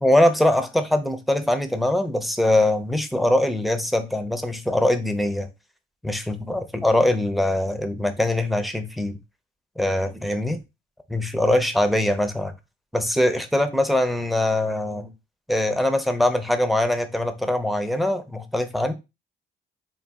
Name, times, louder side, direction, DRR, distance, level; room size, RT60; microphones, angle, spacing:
voice 1, 0.0-5.5 6.0-9.2 9.8-10.6 11.1-12.5 12.9-15.1 15.5-18.9, left 1 dB, ahead, 0.5 m, -22 dB
3.9 x 2.3 x 3.5 m
cardioid pair, 90°, 20 cm